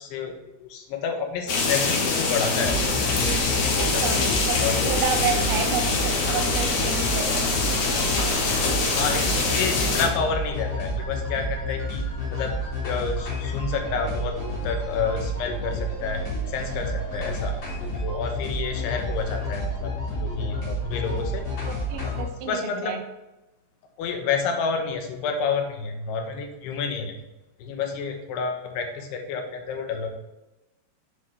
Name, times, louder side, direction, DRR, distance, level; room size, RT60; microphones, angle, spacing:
voice 1, 0.0-2.8 3.1-5.0 8.9-17.5 18.0-21.4 21.9-23.0 24.0-27.2 27.6-30.2, left 5 dB, 80° left, 4 dB, 3.1 m, -30 dB
sound 1, 1.5-10.1, left 3 dB, 55° left, 2.5 m, -24 dB
sound 2, 2.6-22.2, equal, 30° left, 3.8 m, -30 dB
voice 2, 4.0-4.6 4.8-7.3 7.7-7.8 21.7-23.0, right 6 dB, 90° right, 6 dB, 1.9 m, -30 dB
9.1 x 7.8 x 3.3 m, 1.0 s
omnidirectional pair, 4.8 m